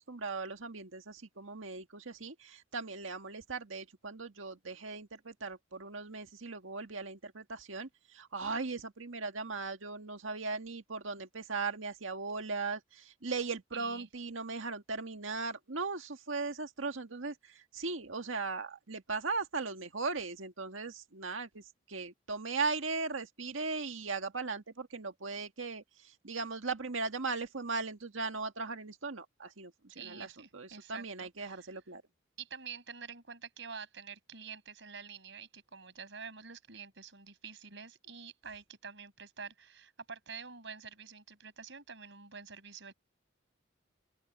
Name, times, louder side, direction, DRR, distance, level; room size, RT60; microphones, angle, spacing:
voice 1, 0.1-32.0, right 4 dB, 85° right, 1.8 m, -38 dB
voice 2, 13.7-14.1 29.9-31.7 32.4-42.9, right 6 dB, 65° right, 6.2 m, -47 dB
open air
head